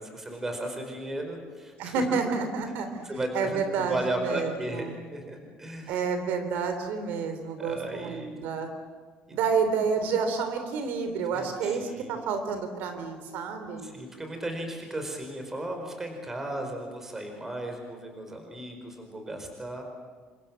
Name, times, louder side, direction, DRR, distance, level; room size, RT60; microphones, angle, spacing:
voice 1, 0.0-2.2 2.6-2.7 3.0-6.0 7.6-8.3 9.3-9.4 11.3-12.2 13.8-19.8, right 1 dB, 10° right, 4 dB, 4.9 m, -35 dB
voice 2, 1.8-3.1 3.3-5.0 5.9-8.7 9.3-13.9, right 5 dB, 60° right, 7 dB, 3.4 m, -29 dB
28.0 x 26.0 x 7.7 m, 1.5 s
cardioid pair, 180°, 3 cm